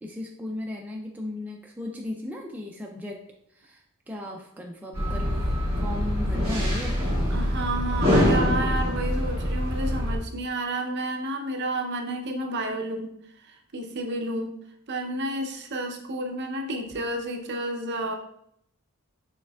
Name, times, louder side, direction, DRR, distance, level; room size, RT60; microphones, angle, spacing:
voice 1, 0.0-3.2 3.5-5.4 5.8-7.0, left 1 dB, 5° right, 0 dB, 0.3 m, -36 dB
sound 1, 4.9-10.2, equal, 25° right, 1.6 m, -24 dB
voice 2, 7.3-13.1 13.4-14.5 14.9-18.1, right 1 dB, 50° right, 3 dB, 0.6 m, -31 dB
6.4 x 3.4 x 2.3 m, 0.73 s
head